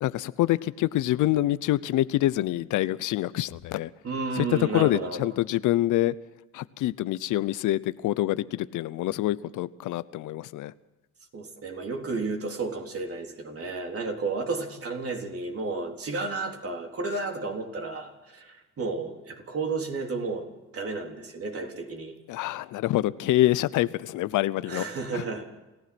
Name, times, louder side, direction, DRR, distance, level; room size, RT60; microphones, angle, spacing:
voice 1, 0.0-3.9 4.4-6.2 6.5-10.7 22.3-24.8 25.1-25.2, left 15 dB, 85° left, 17 dB, 0.7 m, -26 dB
voice 2, 4.0-5.3 11.3-20.5 20.7-22.1 24.6-25.4, right 3 dB, 50° right, 2 dB, 3.8 m, -32 dB
28.5 x 15.5 x 6.1 m, 1.1 s
cardioid pair, 90°, 30 cm